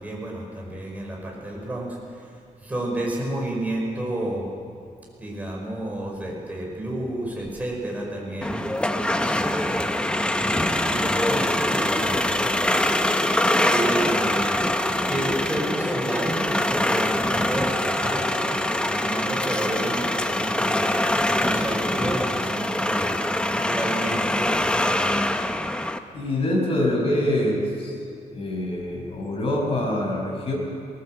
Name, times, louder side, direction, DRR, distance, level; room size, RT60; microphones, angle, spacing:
voice 1, 0.0-2.3 2.6-4.5 5.2-9.9 10.5-12.7 13.7-14.7 15.1-23.2 23.6-25.3, right 1 dB, 10° right, -2 dB, 5.4 m, -31 dB
sound 1, 8.4-26.0, left 1 dB, 5° left, 0.8 m, -24 dB
voice 2, 26.1-27.9 28.3-30.5, left 1 dB, 45° left, -1 dB, 5.7 m, -25 dB
20.5 x 18.0 x 7.8 m, 2.4 s
wide cardioid pair, 160°, 13 cm